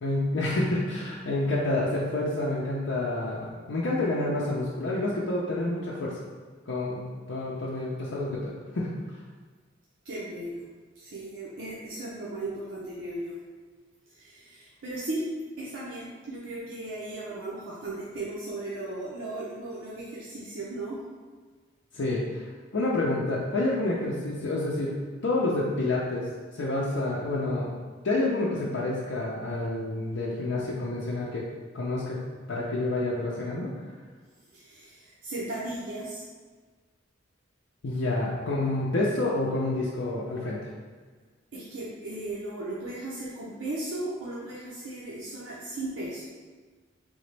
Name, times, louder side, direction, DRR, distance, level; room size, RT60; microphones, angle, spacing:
voice 1, 0.0-6.2 6.7-7.0 7.3-8.9 21.9-22.4 22.7-26.3 26.5-27.7 28.0-31.4 31.7-32.2 32.5-33.7 37.8-40.7, left 2 dB, 70° left, -6 dB, 0.6 m, -28 dB
voice 2, 10.0-10.6 11.0-13.3 14.1-15.2 15.6-21.0 34.5-36.2 41.5-46.2, right 2 dB, 90° right, -7 dB, 0.7 m, -36 dB
3.9 x 3.5 x 3.3 m, 1.5 s
head